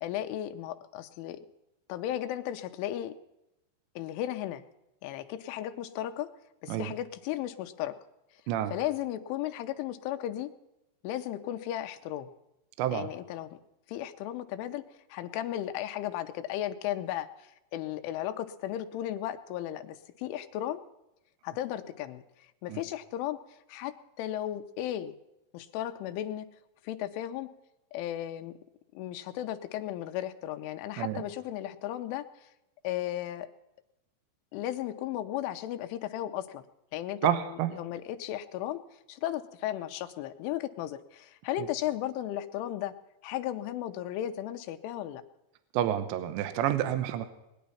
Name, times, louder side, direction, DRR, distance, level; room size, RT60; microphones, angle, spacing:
voice 1, 0.0-1.5 1.9-3.2 4.0-4.6 5.0-6.3 6.6-7.9 8.7-10.5 11.0-12.3 12.9-13.6 13.9-14.8 15.1-20.8 21.4-23.4 23.7-25.1 25.5-26.5 26.8-27.5 27.9-28.5 28.9-32.5 32.8-33.5 34.5-36.6 36.9-38.8 39.1-42.9 43.2-45.2, left 12 dB, 85° left, 8 dB, 3.4 m, -35 dB
voice 2, 37.2-37.7 45.7-47.3, right 11 dB, 75° right, 11 dB, 3.0 m, -29 dB
21.0 x 10.5 x 5.6 m, 0.90 s
omnidirectional pair, 5.6 m